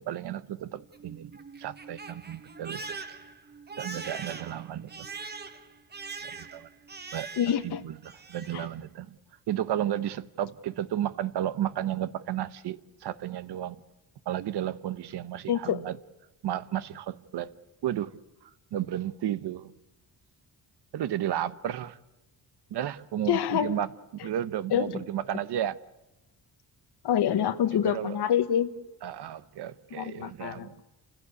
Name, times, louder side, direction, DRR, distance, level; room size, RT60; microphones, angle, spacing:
voice 1, 0.0-1.3 1.6-3.0 3.8-5.1 6.2-6.7 7.1-7.3 7.6-9.2 9.5-13.8 14.3-16.0 16.4-17.5 17.8-19.7 20.9-22.0 22.7-25.8 27.7-28.2 29.0-30.8, right 11 dB, 75° right, 1.0 m, -33 dB
Crying sobbing, 0.7-7.7 8.0-8.7, right 4 dB, 25° right, 1.3 m, -42 dB
voice 2, 7.4-7.8 8.5-8.6 15.5-15.8 23.3-23.7 24.7-25.0 27.0-28.7 29.9-30.7, left 9 dB, 75° left, 1.3 m, -26 dB
29.0 x 16.5 x 8.4 m
wide cardioid pair, 180°, 41 cm